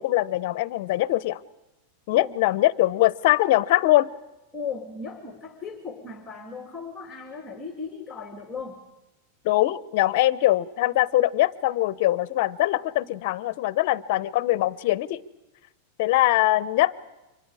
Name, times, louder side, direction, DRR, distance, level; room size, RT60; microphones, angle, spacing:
voice 1, 0.0-1.4 2.1-4.1 9.4-15.2 16.0-16.9, left 16 dB, 60° left, 17 dB, 0.8 m, -22 dB
voice 2, 4.5-8.9, left 5 dB, 10° left, 3 dB, 2.6 m, -36 dB
30.0 x 25.0 x 4.9 m, 1.0 s
supercardioid pair, 140°, 0 cm